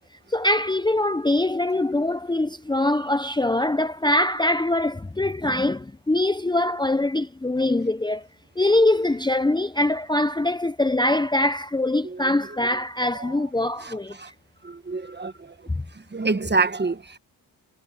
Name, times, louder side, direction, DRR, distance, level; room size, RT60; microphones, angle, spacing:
voice 1, 0.3-8.3 8.6-14.2, left 1 dB, 10° left, 0.8 m, -23 dB
voice 2, 13.8-14.3 14.6-15.5 15.9-17.2, right 3 dB, 25° right, 1.3 m, -27 dB
cardioid pair, 70°, 44 cm